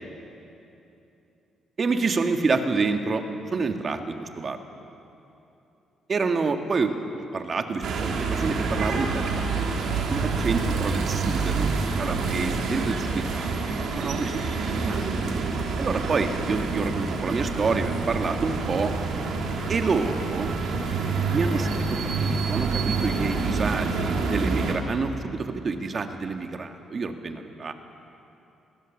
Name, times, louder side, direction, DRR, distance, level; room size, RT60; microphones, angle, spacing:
voice 1, 1.8-4.6 6.1-9.5 10.1-13.7 13.9-15.4 15.8-18.9 19.7-20.5 21.3-27.7, right 4 dB, 40° right, 5 dB, 1.7 m, -28 dB
sound 1, 7.8-24.7, right 4 dB, 75° right, 2.9 m, -27 dB
23.0 x 17.0 x 7.3 m, 2.9 s
cardioid pair, 90°, 0 cm